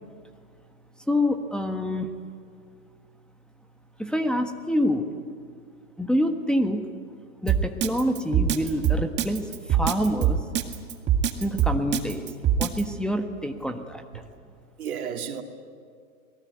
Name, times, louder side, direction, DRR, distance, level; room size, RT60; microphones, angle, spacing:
voice 1, 1.1-2.1 4.0-5.1 6.0-6.9 7.4-10.4 11.4-12.3 12.6-14.2, equal, ahead, 3 dB, 1.3 m, -26 dB
Drum kit, 7.5-12.8, right 9 dB, 25° right, 1.8 m, -23 dB
voice 2, 14.8-15.4, right 7 dB, 80° right, 4 dB, 2.8 m, -33 dB
27.0 x 19.5 x 9.5 m, 2.1 s
hypercardioid pair, 120°, 44 cm